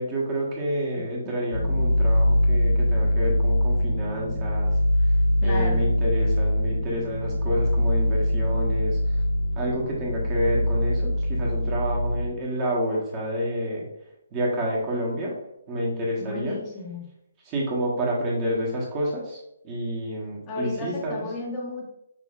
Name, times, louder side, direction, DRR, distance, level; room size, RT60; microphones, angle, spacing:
voice 1, 0.0-4.7 5.4-9.2 9.5-13.8 14.3-15.3 15.7-16.6 17.4-21.3, equal, 25° right, -4 dB, 1.2 m, -29 dB
sound 1, 1.5-12.3, left 1 dB, 75° left, 0.8 m, -23 dB
voice 2, 5.4-5.9 16.2-17.1 20.5-21.8, left 2 dB, 25° left, -3 dB, 1.0 m, -33 dB
6.1 x 2.7 x 2.4 m, 0.79 s
figure-of-eight pair, 140°, 0 cm